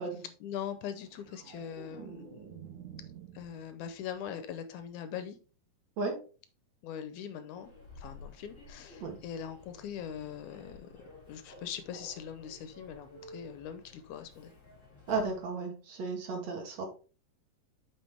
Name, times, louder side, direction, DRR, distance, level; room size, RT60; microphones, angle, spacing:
voice 1, 0.4-2.5 3.3-5.4 6.8-14.5 16.5-16.7, left 8 dB, 80° left, 10 dB, 2.0 m, -42 dB
sound 1, 0.9-4.1 4.4-4.8, right 8 dB, 75° right, 2.6 m, -49 dB
Human voice / Subway metro underground, 7.5-15.5, left 2 dB, 15° left, 2.9 m, -53 dB
voice 2, 15.1-16.9, right 4 dB, 60° right, 3 dB, 2.6 m, -34 dB
8.4 x 5.9 x 3.4 m, 0.36 s
omnidirectional pair, 3.8 m